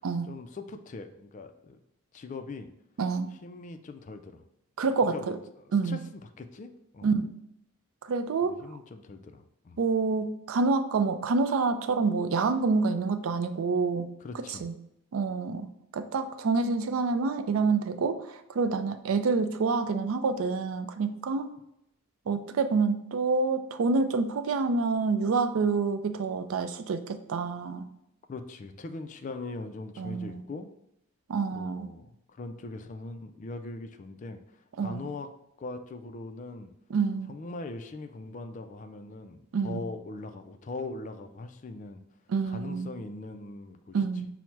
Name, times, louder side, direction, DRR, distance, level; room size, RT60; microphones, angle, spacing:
voice 1, 0.3-1.8 2.1-2.7 3.4-4.4 5.0-7.1 8.4-9.8 14.2-14.6 28.3-30.7 31.5-35.3 35.6-36.7 37.3-42.0 42.4-44.0, left 3 dB, 35° left, 7 dB, 0.3 m, -41 dB
voice 2, 3.0-3.3 4.8-5.4 5.7-6.0 7.0-7.3 8.0-8.6 9.8-14.1 14.5-14.7 15.1-15.7 15.9-21.5 22.3-27.9 30.0-30.4 31.3-31.9 34.8-35.1 36.9-37.3 39.5-39.9 42.3-43.0 43.9-44.3, right 4 dB, 80° right, 10 dB, 0.4 m, -27 dB
5.7 x 2.1 x 4.5 m, 0.79 s
head